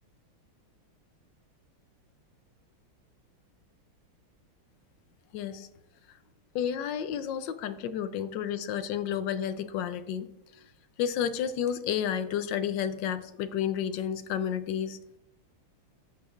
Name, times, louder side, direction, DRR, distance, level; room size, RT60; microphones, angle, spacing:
voice 1, 5.3-5.7 6.5-10.3 11.0-15.0, left 9 dB, 70° left, 12 dB, 1.2 m, -31 dB
15.0 x 8.3 x 2.4 m, 0.87 s
omnidirectional pair, 2.3 m